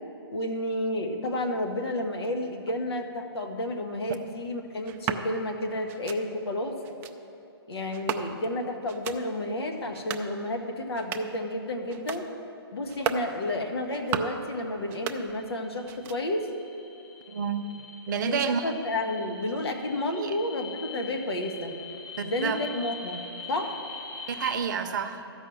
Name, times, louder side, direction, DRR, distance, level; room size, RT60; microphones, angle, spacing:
voice 1, 0.3-6.8 7.7-12.3 12.7-16.5 18.2-21.7 22.2-23.2 23.5-23.7, left 1 dB, 70° left, 4 dB, 1.5 m, -31 dB
sound 1, 4.8-5.3 5.9-6.2 6.8-7.1 7.9-8.5 8.9-9.2 9.8-10.3 10.8-11.4 11.9-12.2 12.8-13.3 13.8-14.4 14.8-15.6 15.8-16.4, right 8 dB, 15° right, 0.4 m, -35 dB
sound 2, 15.2-24.6, left 4 dB, 20° left, 1.4 m, -43 dB
voice 2, 17.3-17.7 18.1-18.7 20.1-20.3 22.2-22.6 24.3-25.3, right 7 dB, 45° right, 8 dB, 0.8 m, -29 dB
13.5 x 5.6 x 7.7 m, 2.8 s
hypercardioid pair, 145°, 13 cm